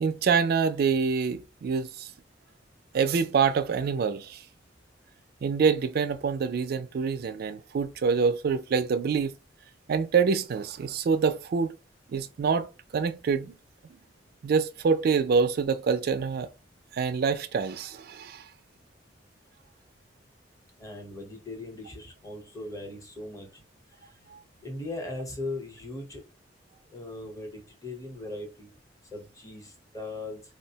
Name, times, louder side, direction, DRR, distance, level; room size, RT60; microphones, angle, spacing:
voice 1, 0.0-2.1 2.9-4.4 5.4-9.3 9.9-11.7 12.1-12.7 12.9-13.5 14.4-16.5 16.9-18.4 24.3-24.4, right 5 dB, 55° right, 0.3 m, -26 dB
voice 2, 20.8-23.6 24.0-24.1 24.6-26.2 26.9-28.7 29.1-30.4, left 2 dB, 20° left, 0.8 m, -39 dB
3.9 x 2.0 x 2.8 m
head